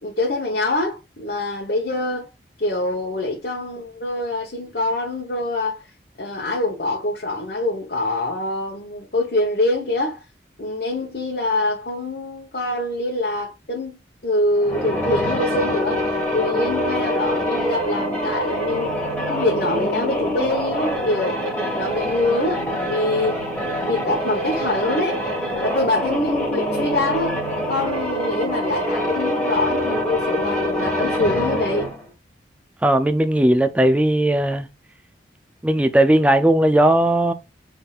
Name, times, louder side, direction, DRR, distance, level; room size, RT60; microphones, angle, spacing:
voice 1, 0.0-2.3 2.6-5.9 6.2-10.2 10.6-14.0 14.2-18.9 19.3-21.4 21.7-23.4 23.8-25.2 25.6-27.4 27.7-31.9, left 2 dB, 55° left, 1.0 m, -24 dB
sound 1, 14.5-32.0, equal, 10° left, 1.6 m, -25 dB
voice 2, 32.8-34.7 35.6-37.3, right 1 dB, 5° right, 0.3 m, -17 dB
5.8 x 3.5 x 2.4 m
head